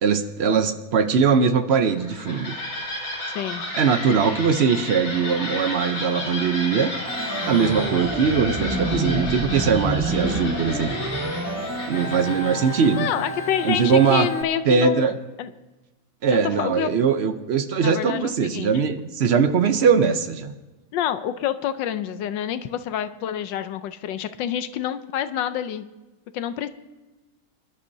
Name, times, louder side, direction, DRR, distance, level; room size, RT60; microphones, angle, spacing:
voice 1, 0.0-2.6 3.7-6.9 7.5-11.0 11.9-13.1 13.6-14.3 14.6-15.1 16.2-20.6, right 6 dB, 70° right, 9 dB, 0.6 m, -21 dB
sound 1, 1.8-14.3, left 1 dB, 70° left, 3.6 m, -33 dB
Organ, 7.1-14.4, right 1 dB, 15° right, 0.5 m, -29 dB
voice 2, 13.0-15.1 15.4-15.5 16.6-16.9 17.8-18.7 20.9-25.8 26.3-26.7, left 10 dB, 85° left, 12 dB, 1.4 m, -27 dB
24.5 x 12.0 x 2.7 m, 1.1 s
omnidirectional pair, 1.9 m